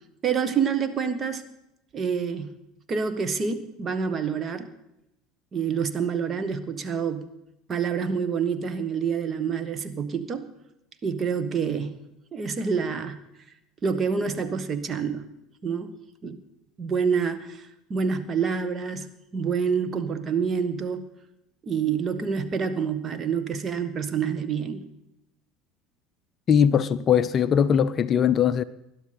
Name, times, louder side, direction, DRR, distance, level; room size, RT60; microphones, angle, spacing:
voice 1, 0.2-1.4 1.9-2.5 2.9-4.7 5.5-7.3 7.7-10.4 11.0-11.9 12.3-13.2 13.8-15.2 15.6-16.4 16.8-21.1 21.6-24.9, right 6 dB, 30° right, 1.3 m, -27 dB
voice 2, 26.5-28.6, left 8 dB, 35° left, 0.5 m, -20 dB
20.0 x 11.5 x 4.1 m
figure-of-eight pair, 70°, 0 cm